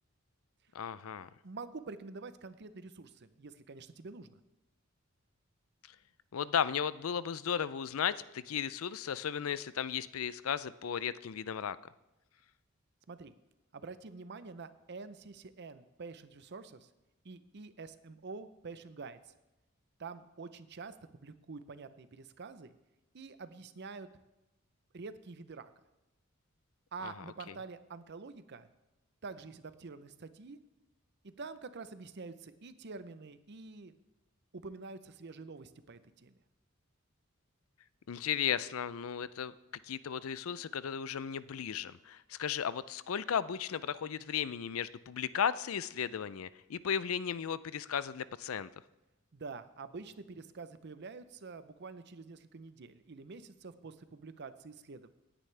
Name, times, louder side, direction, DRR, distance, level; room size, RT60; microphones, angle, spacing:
voice 1, 0.7-1.3 5.9-6.0 6.3-11.8 27.0-27.1 38.1-39.5 39.8-48.7, left 8 dB, 85° left, 17 dB, 0.5 m, -35 dB
voice 2, 1.4-4.4 13.1-13.3 13.7-16.9 17.2-19.3 20.0-22.7 23.1-24.1 24.9-25.7 26.9-28.7 29.2-30.6 31.2-33.9 34.5-36.4 49.3-55.1, right 4 dB, 55° right, 12 dB, 0.7 m, -47 dB
17.5 x 9.9 x 3.4 m, 1.0 s
head